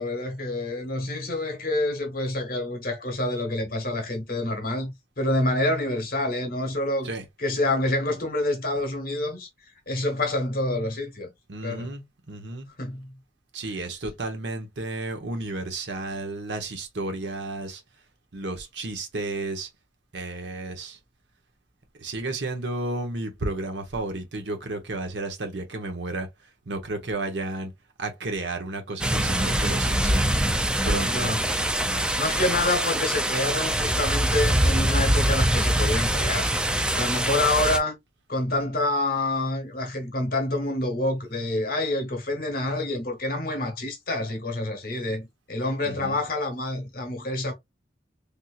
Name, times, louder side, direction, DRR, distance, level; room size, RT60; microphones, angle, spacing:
voice 1, 0.0-7.1 7.4-9.5 9.9-11.3 11.6-11.9 12.8-13.1 31.0-31.4 32.2-36.5 36.9-37.9 38.3-47.5, left 2 dB, 55° left, 1.2 m, -27 dB
voice 2, 11.5-12.7 13.5-17.8 18.3-19.7 20.1-21.0 22.0-26.3 26.7-27.7 28.0-30.3 30.8-31.4 31.8-32.1 45.8-46.2, right 2 dB, 75° right, 0.9 m, -32 dB
sound 1, 29.0-37.8, right 1 dB, 5° right, 0.3 m, -24 dB
3.4 x 2.8 x 2.4 m
head